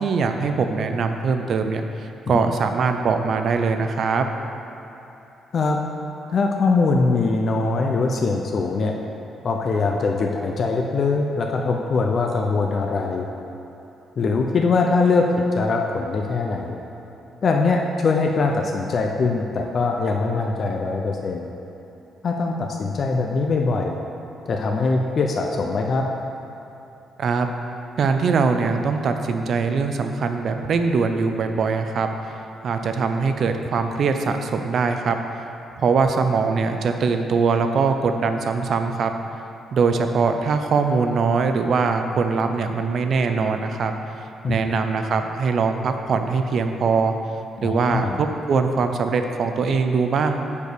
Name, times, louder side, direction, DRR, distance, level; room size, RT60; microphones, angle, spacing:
voice 1, 0.0-1.8 2.3-4.3 27.2-27.5 28.0-32.1 32.6-35.2 35.8-39.1 39.7-43.9 44.5-47.1 47.6-50.4, right 5 dB, 60° right, 6 dB, 0.6 m, -22 dB
voice 2, 6.3-8.9 9.4-13.3 14.2-16.8 17.4-21.5 22.2-24.0 24.5-26.1 44.4-44.6 47.6-48.2, left 3 dB, 50° left, 1 dB, 0.6 m, -22 dB
6.6 x 4.9 x 6.9 m, 3.0 s
cardioid pair, 90°, 0 cm